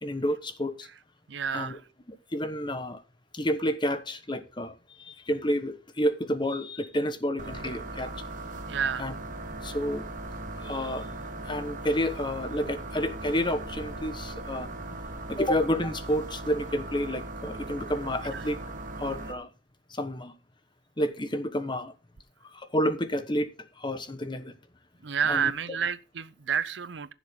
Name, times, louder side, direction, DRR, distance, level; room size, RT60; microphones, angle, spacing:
voice 1, 0.0-0.9 1.5-1.8 2.1-3.0 3.3-8.1 9.0-9.1 9.6-10.0 10.6-11.1 11.4-14.7 15.3-18.6 19.0-19.5 19.9-20.3 21.0-21.9 22.5-24.5 25.3-25.5, equal, 25° left, 1.1 m, -30 dB
voice 2, 1.3-1.8 8.7-9.1 18.3-18.4 25.0-27.1, right 7 dB, 65° right, 0.6 m, -29 dB
sound 1, 7.4-19.3, right 2 dB, 45° right, 1.6 m, -39 dB
15.0 x 7.2 x 3.7 m
head